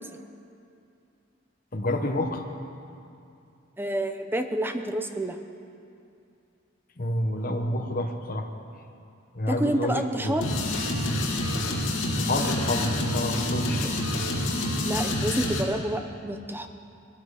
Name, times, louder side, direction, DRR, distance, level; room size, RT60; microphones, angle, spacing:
voice 1, 1.7-2.4 7.0-8.5 9.3-10.4 12.2-13.9, left 1 dB, 45° left, 4 dB, 1.3 m, -28 dB
voice 2, 3.8-5.4 9.5-10.5 14.8-16.7, right 1 dB, 10° right, 7 dB, 0.7 m, -28 dB
sound 1, 10.4-15.6, left 1 dB, 80° left, 2.2 m, -27 dB
21.0 x 13.5 x 5.0 m, 2.6 s
head